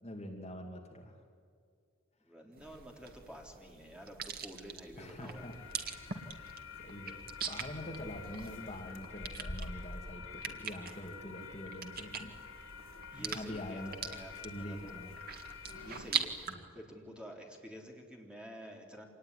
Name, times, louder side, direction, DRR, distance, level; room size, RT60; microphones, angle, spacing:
voice 1, 0.0-1.2 5.0-5.7 6.3-12.3 13.1-13.9 14.4-15.1 16.5-16.7, left 1 dB, 35° left, 2 dB, 2.5 m, -45 dB
voice 2, 2.2-5.5 13.1-14.8 15.7-19.0, equal, 5° right, 0 dB, 3.7 m, -50 dB
sound 1, 2.6-16.5, right 6 dB, 50° right, 2.0 m, -43 dB
sound 2, 5.3-16.0, left 4 dB, 75° left, 3.2 m, -47 dB
26.0 x 19.5 x 10.0 m, 2.2 s
head